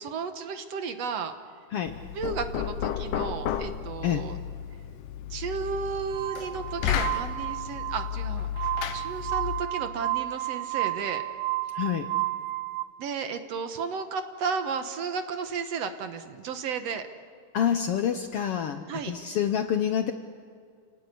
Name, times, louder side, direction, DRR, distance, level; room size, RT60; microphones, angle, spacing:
voice 1, 0.0-1.3 2.1-4.3 5.3-8.5 8.9-11.2 13.0-17.1 18.9-19.4, right 6 dB, 65° right, 8 dB, 2.1 m, -33 dB
Knock, 1.9-9.8, left 9 dB, 90° left, 2.6 m, -33 dB
Glass, 6.1-12.8, right 17 dB, 90° right, 1.2 m, -32 dB
voice 2, 11.7-12.1 17.5-20.1, left 9 dB, 70° left, 8 dB, 1.4 m, -27 dB
29.5 x 18.5 x 8.4 m, 2.2 s
omnidirectional pair, 3.5 m